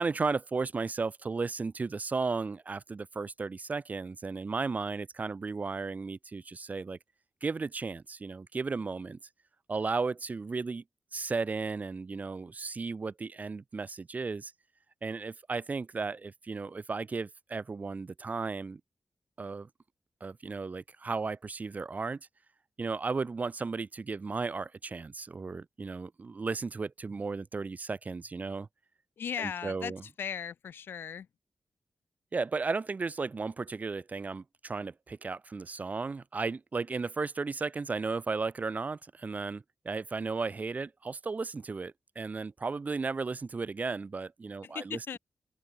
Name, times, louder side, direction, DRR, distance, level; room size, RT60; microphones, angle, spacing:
voice 1, 0.0-7.0 7.4-9.2 9.7-10.8 11.1-14.5 15.0-18.8 19.4-19.7 20.2-22.2 22.8-28.7 29.4-30.0 32.3-45.0, right 4 dB, 45° right, 1.1 m, -34 dB
voice 2, 29.2-31.3 44.6-45.2, left 8 dB, 90° left, 1.3 m, -37 dB
open air
cardioid pair, 65°, 4 cm